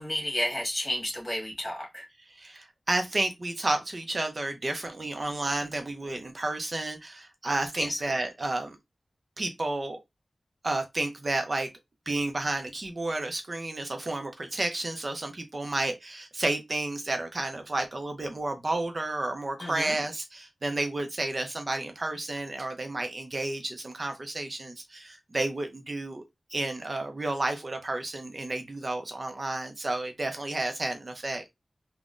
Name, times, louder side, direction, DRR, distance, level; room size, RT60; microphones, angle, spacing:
voice 1, 0.0-2.1 7.8-8.0 19.6-20.0, left 1 dB, 30° left, 1.7 m, -31 dB
voice 2, 2.4-8.8 9.4-10.0 10.6-11.7 12.1-26.2 26.5-31.4, right 2 dB, 45° right, 0.5 m, -31 dB
3.7 x 2.1 x 2.4 m
wide cardioid pair, 90°, 0 cm